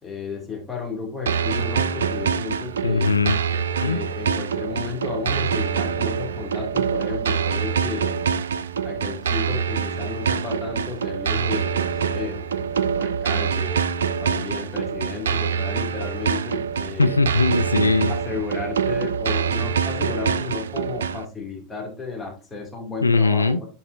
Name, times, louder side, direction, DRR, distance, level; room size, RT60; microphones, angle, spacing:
voice 1, 0.0-3.1 3.8-8.2 8.8-13.9 14.2-17.2 18.1-23.7, left 4 dB, 15° left, 2.5 m, -33 dB
sound 1, 1.3-21.3, right 6 dB, 70° right, 0.3 m, -25 dB
voice 2, 2.8-3.4 3.8-4.0 17.0-18.1 23.0-23.6, left 3 dB, 85° left, 0.4 m, -20 dB
11.0 x 4.2 x 2.6 m
figure-of-eight pair, 80°, 0 cm